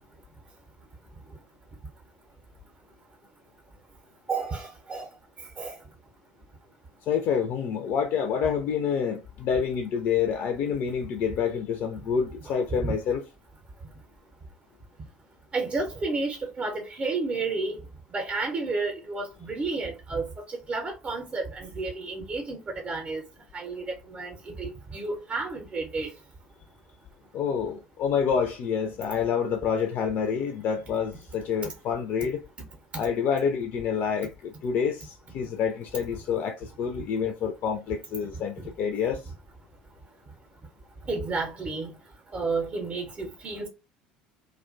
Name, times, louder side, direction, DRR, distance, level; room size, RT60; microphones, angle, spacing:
voice 1, 4.3-5.1 5.6-5.7 12.4-12.5 12.8-13.0 15.5-17.8 18.1-20.3 20.7-23.2 23.5-26.1 41.1-41.9 42.3-43.7, right 3 dB, 30° right, 0.6 m, -31 dB
voice 2, 7.1-13.2 27.3-32.4 33.0-39.2, left 7 dB, 45° left, 0.3 m, -28 dB
2.4 x 2.1 x 2.4 m
figure-of-eight pair, 65°, 4 cm